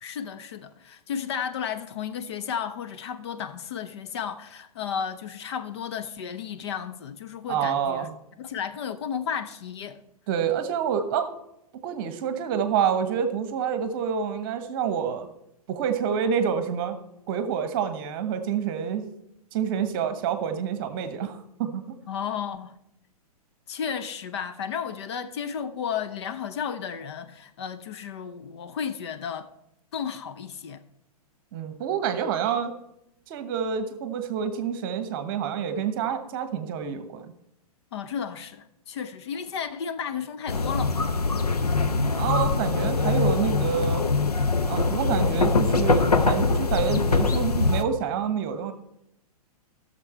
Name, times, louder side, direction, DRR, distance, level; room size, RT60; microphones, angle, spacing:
voice 1, 0.0-8.1 8.4-10.0 22.1-22.8 23.7-29.5 29.9-30.8 37.9-41.0, left 7 dB, 45° left, 0.7 m, -33 dB
voice 2, 7.5-8.1 10.3-11.3 11.8-15.3 15.7-17.0 17.3-19.1 19.5-21.9 31.5-32.7 33.3-37.3 41.8-44.0 44.7-48.7, right 7 dB, 35° right, 1.1 m, -28 dB
sound 1, 40.5-47.8, left 3 dB, 75° left, 0.8 m, -23 dB
15.5 x 6.7 x 4.4 m
figure-of-eight pair, 115°, 20 cm